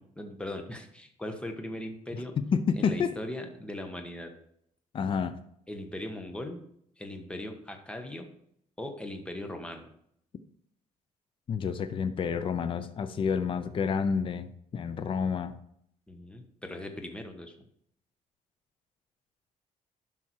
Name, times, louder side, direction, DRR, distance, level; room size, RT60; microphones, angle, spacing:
voice 1, 0.0-2.3 2.8-4.3 5.7-6.6 7.0-8.3 8.8-9.9 16.1-17.5, left 1 dB, 10° left, 5 dB, 1.3 m, -39 dB
voice 2, 2.5-3.2 4.9-5.4 11.5-15.6, left 6 dB, 40° left, 11 dB, 0.7 m, -29 dB
11.0 x 6.0 x 4.7 m, 0.71 s
cardioid pair, 125°, 13 cm